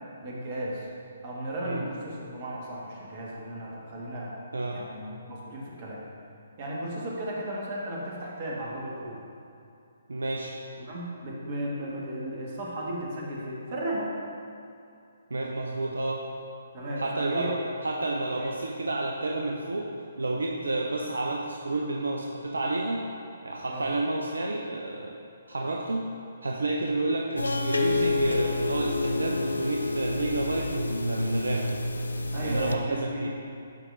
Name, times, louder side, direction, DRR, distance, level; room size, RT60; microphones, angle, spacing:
voice 1, 0.2-0.9 1.2-4.4 4.7-6.0 6.6-9.2 10.8-14.1 16.7-17.6 18.3-18.5 23.7-23.9 32.3-33.3, right 1 dB, 40° right, -4 dB, 1.6 m, -35 dB
voice 2, 10.1-10.6 15.3-16.2 17.0-17.6 17.8-23.0 23.4-25.2 25.5-26.0 26.4-31.7 32.4-33.3, right 2 dB, 75° right, 0 dB, 0.6 m, -30 dB
sound 1, 27.4-32.8, left 3 dB, 80° left, 0.5 m, -29 dB
12.0 x 4.9 x 2.6 m, 2.6 s
figure-of-eight pair, 135°, 0 cm